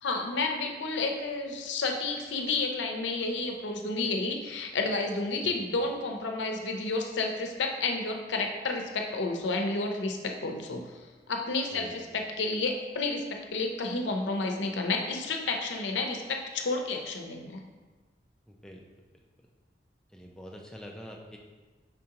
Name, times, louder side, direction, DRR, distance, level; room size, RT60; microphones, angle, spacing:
voice 1, 0.0-11.0 11.3-17.6, left 3 dB, 90° left, 3 dB, 0.6 m, -31 dB
voice 2, 11.7-12.1 18.5-18.8 20.1-21.4, equal, 5° left, 0 dB, 0.4 m, -45 dB
5.0 x 3.7 x 2.9 m, 1.3 s
head